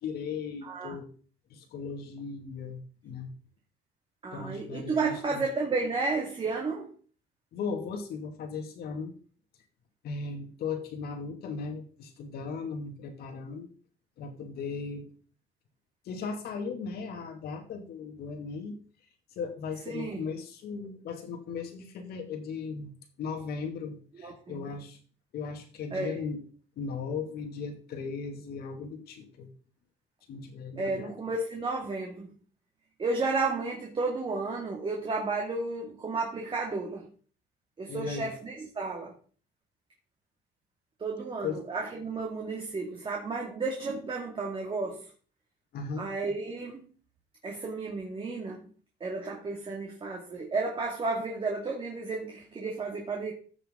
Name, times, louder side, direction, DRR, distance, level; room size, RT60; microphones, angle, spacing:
voice 1, 0.0-1.1 1.5-3.3 4.3-5.4 7.5-9.1 10.0-13.7 14.2-15.1 16.1-18.8 19.4-22.9 23.2-25.0 25.3-26.4 26.8-29.5 30.3-31.1 37.9-38.3 41.4-41.6 45.7-46.0, left 5 dB, 70° left, 5 dB, 2.5 m, -37 dB
voice 2, 0.6-1.0 4.2-6.9 19.9-20.2 24.2-24.7 25.9-26.2 30.8-32.3 33.0-37.1 37.8-39.1 41.0-45.1 46.0-46.9 47.4-48.7 49.0-53.3, right 3 dB, 30° right, -1 dB, 2.3 m, -32 dB
15.0 x 6.7 x 3.8 m, 0.41 s
cardioid pair, 110°, 17 cm